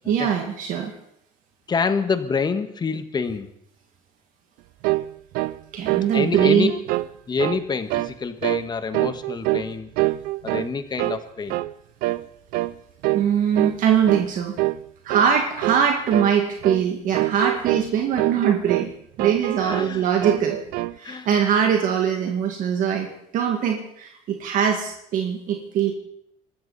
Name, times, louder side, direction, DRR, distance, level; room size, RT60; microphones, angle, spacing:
voice 1, 0.1-0.9 5.7-6.7 13.1-14.5 15.0-18.9 19.2-20.6 21.0-25.9, right 8 dB, 60° right, 2 dB, 2.0 m, -22 dB
voice 2, 1.7-3.5 6.1-6.7 7.3-9.9 10.4-11.6 19.6-20.0 21.0-21.3, left 5 dB, 30° left, 10 dB, 1.4 m, -26 dB
sound 1, 4.8-5.1 5.3-5.6 5.9-7.1 7.4-7.6 7.9-8.2 8.4-8.7 8.9-9.7 10.0-10.7 11.0-11.2 11.5-11.7 12.0-12.2 12.5-12.7 13.0-13.3 13.6-13.8 14.1-14.3 14.6-14.8 15.1-15.3 15.6-15.9 16.1-16.3 16.6-16.8 17.1-17.9 18.2-18.9 19.2-19.9 20.2-21.0, right 19 dB, 80° right, 0.5 m, -25 dB
24.5 x 13.5 x 4.2 m, 0.72 s
cardioid pair, 110°, 15 cm